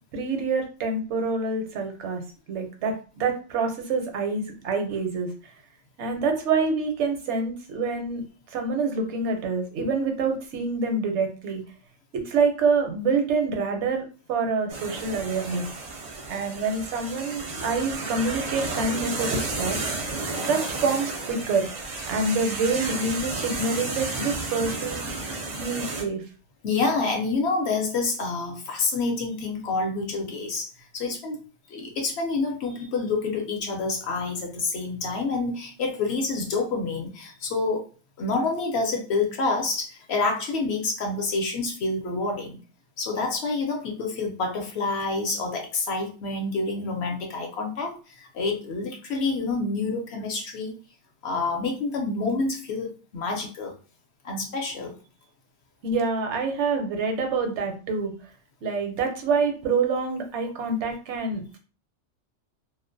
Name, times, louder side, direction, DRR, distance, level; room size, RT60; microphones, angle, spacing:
voice 1, 0.1-2.2 2.5-5.3 6.0-8.2 8.5-11.6 12.1-15.6 16.3-20.1 20.4-21.7 22.1-25.0 25.6-26.2 55.8-58.1 58.6-61.6, right 4 dB, 75° right, 4 dB, 0.9 m, -26 dB
sound 1, 14.7-26.0, right 3 dB, 50° right, 0.5 m, -32 dB
voice 2, 26.6-30.7 30.9-31.4 31.7-37.9 38.2-42.6 43.0-50.7 51.2-53.7 54.2-54.9, left 3 dB, 65° left, 1 dB, 0.8 m, -28 dB
2.4 x 2.1 x 2.5 m, 0.35 s
omnidirectional pair, 1.2 m